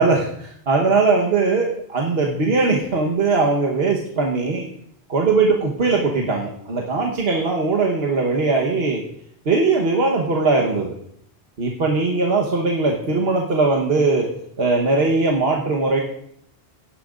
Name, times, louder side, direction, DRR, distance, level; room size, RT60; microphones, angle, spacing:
voice 1, 0.0-4.7 5.1-9.0 9.4-10.9 11.6-14.3 14.6-16.0, right 3 dB, 75° right, -1 dB, 1.4 m, -20 dB
17.5 x 10.0 x 2.5 m, 0.71 s
omnidirectional pair, 1.1 m